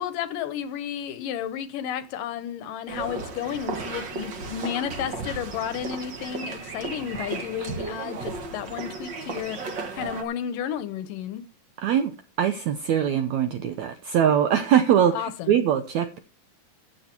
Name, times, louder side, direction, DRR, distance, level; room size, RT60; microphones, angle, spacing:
voice 1, 0.0-11.4 15.1-15.6, left 9 dB, 75° left, 2.3 m, -32 dB
sound 1, 2.9-10.2, right 4 dB, 45° right, 1.5 m, -34 dB
voice 2, 11.8-15.1 15.5-16.2, right 9 dB, 75° right, 1.7 m, -22 dB
14.5 x 7.7 x 4.4 m
omnidirectional pair, 4.3 m